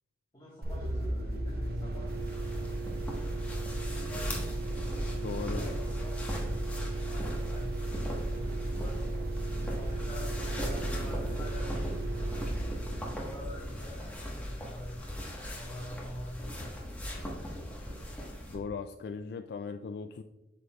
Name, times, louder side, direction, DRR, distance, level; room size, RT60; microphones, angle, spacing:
voice 1, 0.3-2.6 3.9-9.0 9.8-12.5 13.1-15.0 15.5-17.0, left 1 dB, 25° left, -6 dB, 1.5 m, -47 dB
sound 1, 0.6-14.1, right 2 dB, 60° right, 0.8 m, -35 dB
sound 2, 2.1-18.6, equal, 10° left, 1.3 m, -39 dB
voice 2, 5.1-5.7 18.5-20.2, left 5 dB, 65° left, 7 dB, 0.3 m, -38 dB
8.1 x 6.2 x 2.4 m, 1.0 s
head